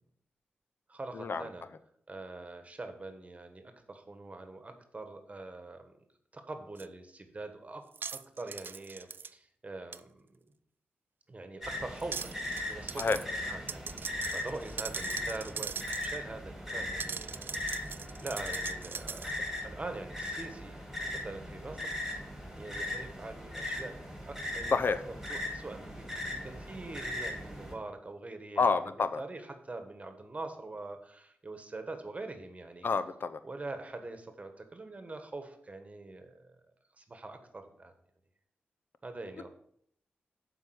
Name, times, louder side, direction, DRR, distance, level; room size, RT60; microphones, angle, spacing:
voice 1, 0.9-1.7 2.1-5.9 6.3-7.9 8.1-10.4 11.3-12.4 12.7-14.0 14.3-20.8 21.1-21.9 22.6-24.0 24.3-24.8 25.3-32.9 33.4-36.6 37.0-37.9 39.0-39.5, right 2 dB, 35° right, 7 dB, 1.4 m, -44 dB
sound 1, 6.8-6.9 7.9-9.3 9.9-10.0 12.0-12.6 12.9-13.2 13.7-16.2 17.0-19.4, right 5 dB, 60° right, 0.4 m, -40 dB
sound 2, 11.6-27.7, left 1 dB, 5° right, 4.0 m, -39 dB
voice 2, 24.7-25.0 28.6-29.2 32.8-33.4, left 4 dB, 60° left, 12 dB, 0.7 m, -28 dB
7.4 x 4.9 x 6.4 m, 0.68 s
cardioid pair, 50°, 4 cm